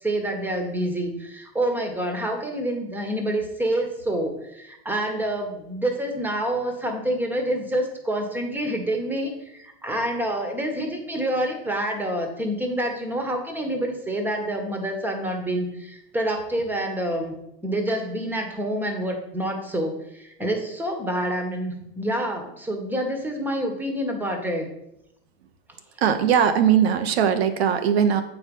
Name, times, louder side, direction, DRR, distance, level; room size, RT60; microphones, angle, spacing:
voice 1, 0.0-17.3 17.6-24.7, right 1 dB, 5° right, 3 dB, 1.4 m, -27 dB
voice 2, 26.0-28.2, right 8 dB, 85° right, 8 dB, 1.1 m, -20 dB
8.0 x 4.8 x 5.4 m, 0.82 s
supercardioid pair, 130°, 31 cm